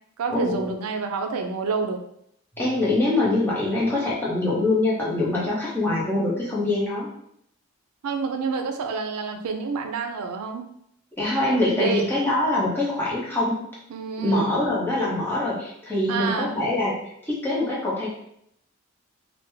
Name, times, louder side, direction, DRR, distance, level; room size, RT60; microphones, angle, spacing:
voice 1, 0.2-2.0 8.0-10.6 11.8-12.0 13.9-14.7 16.1-16.6, right 4 dB, 90° right, 5 dB, 0.4 m, -28 dB
voice 2, 2.6-7.1 11.1-13.6 14.2-18.1, left 2 dB, 10° left, -7 dB, 0.7 m, -24 dB
3.3 x 2.1 x 3.1 m, 0.73 s
head